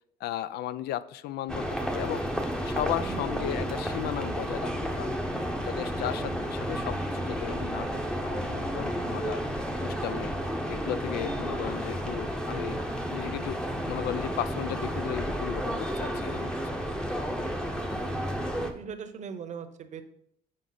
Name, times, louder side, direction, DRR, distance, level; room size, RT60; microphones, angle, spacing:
voice 1, 0.2-2.2 2.7-5.2 5.6-7.9 8.2-9.4 9.8-10.3 10.7-12.8 13.1-13.6 13.9-16.6, left 12 dB, 75° left, 16 dB, 0.4 m, -35 dB
sound 1, 1.5-18.7, equal, 5° left, 0.8 m, -31 dB
voice 2, 3.0-3.3 18.0-20.0, right 7 dB, 45° right, 9 dB, 0.8 m, -40 dB
7.5 x 5.0 x 4.0 m, 0.70 s
cardioid pair, 110°, 17 cm